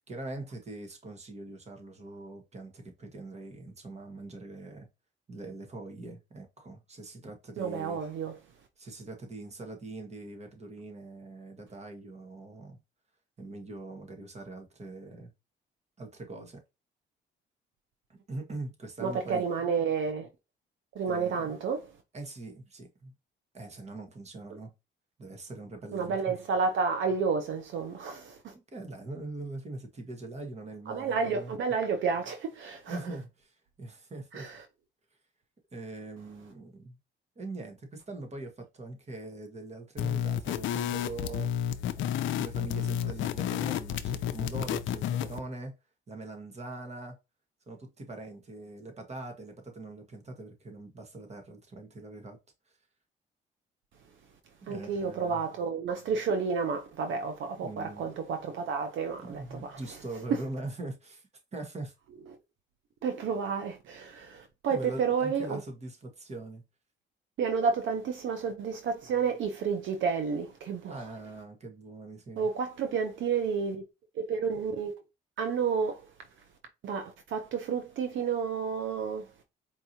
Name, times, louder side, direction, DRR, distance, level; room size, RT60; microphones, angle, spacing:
voice 1, 0.1-4.9 5.3-8.0 8.8-12.8 13.4-15.3 16.0-16.6 18.1-19.5 21.0-21.6 22.1-23.1 23.5-24.7 25.2-26.4 28.7-31.5 32.9-34.5 35.7-37.0 37.3-41.5 42.0-45.7 46.1-47.2 47.7-52.4 54.6-55.4 57.6-58.1 59.2-61.9 64.7-66.6 70.9-72.5, right 2 dB, 35° right, 1.4 m, -42 dB
voice 2, 7.6-8.4 19.0-20.3 20.9-21.9 25.9-28.5 30.9-33.0 34.3-34.6 54.7-59.8 63.0-65.6 67.4-71.1 72.4-73.8 74.2-74.9 75.4-76.1 76.8-79.3, right 5 dB, 75° right, 0.7 m, -31 dB
sound 1, 40.0-45.4, left 10 dB, 75° left, 0.4 m, -31 dB
4.5 x 2.9 x 2.7 m
cardioid pair, 90°, 20 cm